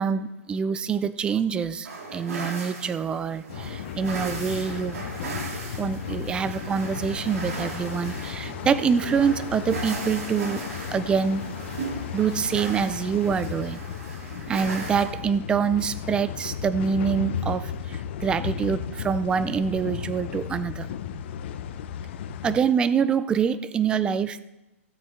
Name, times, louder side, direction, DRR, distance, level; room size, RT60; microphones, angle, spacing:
voice 1, 0.0-4.9 5.8-10.6 10.9-11.5 12.1-13.8 14.5-20.9 22.4-24.4, right 6 dB, 10° right, 15 dB, 0.4 m, -25 dB
sound 1, 1.8-15.0, right 4 dB, 80° right, 2.7 m, -37 dB
sound 2, 3.5-22.6, left 8 dB, 50° left, 0.7 m, -35 dB
16.0 x 7.6 x 3.7 m, 0.98 s
hypercardioid pair, 150°, 8 cm